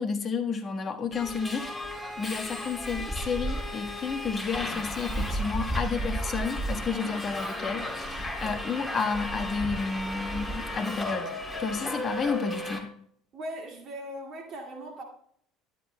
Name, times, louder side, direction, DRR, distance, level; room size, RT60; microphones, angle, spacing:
voice 1, 0.0-1.7 2.2-11.3 11.6-12.9, left 5 dB, 40° left, 1.3 m, -31 dB
Subway metro underground, 1.1-12.8, equal, 10° left, 3.0 m, -34 dB
voice 2, 13.3-15.0, equal, 45° right, 2.0 m, -39 dB
12.5 x 10.0 x 2.2 m
hypercardioid pair, 65°, 0 cm